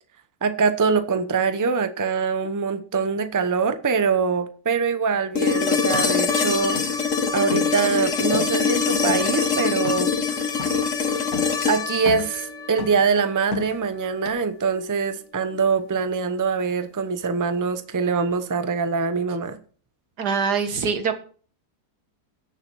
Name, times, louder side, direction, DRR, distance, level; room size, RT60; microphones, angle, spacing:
voice 1, 0.4-6.8 7.1-10.1 11.7-19.6, right 5 dB, 20° right, 0.5 m, -23 dB
sound 1, 5.4-13.4 15.5-15.6, left 5 dB, 50° left, 1.6 m, -24 dB
sound 2, 5.9-6.1 6.7-7.1 7.4-7.8 8.3-8.6 9.1-9.3 9.8-10.2 10.6-10.9 11.3-11.6 12.0-12.4 12.8-13.1 13.5-13.8 14.2-14.3, left 5 dB, 65° left, 2.1 m, -34 dB
voice 2, 20.2-21.2, right 5 dB, 90° right, 2.0 m, -23 dB
15.5 x 6.8 x 4.7 m
omnidirectional pair, 1.7 m